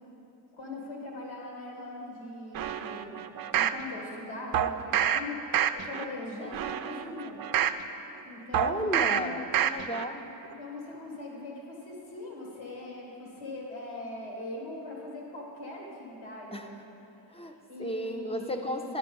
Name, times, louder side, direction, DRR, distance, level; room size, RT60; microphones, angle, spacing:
voice 1, 0.5-3.2 3.5-5.4 5.7-7.4 8.2-9.4 10.5-16.8 17.7-18.9, left 2 dB, 85° left, -2 dB, 1.7 m, -41 dB
sound 1, 2.5-3.8 4.5-5.2 5.5-6.0 6.5-7.8 8.5-9.2 9.5-10.0 10.4-10.5, right 9 dB, 50° right, 0.5 m, -27 dB
voice 2, 6.2-6.6 8.5-10.2 16.5-16.7 17.3-19.0, equal, 15° left, 5 dB, 0.7 m, -34 dB
9.7 x 6.0 x 5.4 m, 2.9 s
cardioid pair, 60°, 45 cm